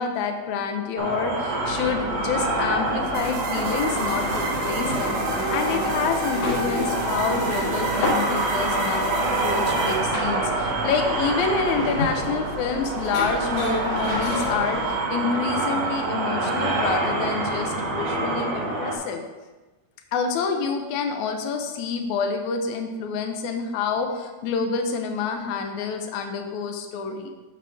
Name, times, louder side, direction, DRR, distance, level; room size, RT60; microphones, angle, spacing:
voice 1, 0.0-19.2 20.1-27.3, left 5 dB, 85° left, 5 dB, 2.0 m, -28 dB
sound 1, 1.0-19.0, right 2 dB, 65° right, 2.1 m, -27 dB
sound 2, 1.6-14.9, left 2 dB, 65° left, 2.6 m, -32 dB
sound 3, 3.1-10.0, right 2 dB, 80° right, 2.7 m, -29 dB
7.5 x 3.4 x 6.2 m, 1.2 s
omnidirectional pair, 3.4 m